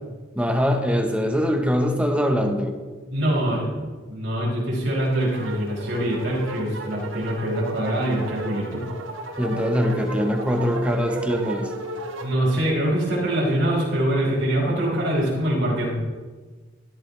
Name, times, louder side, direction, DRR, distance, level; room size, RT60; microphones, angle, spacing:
voice 1, 0.4-2.8 9.4-11.7, equal, 5° right, 4 dB, 1.1 m, -22 dB
voice 2, 3.1-8.8 12.2-15.9, right 1 dB, 60° right, -4 dB, 5.1 m, -24 dB
sound 1, 4.9-12.4, right 3 dB, 85° right, 1.6 m, -34 dB
17.5 x 13.0 x 3.4 m, 1.4 s
head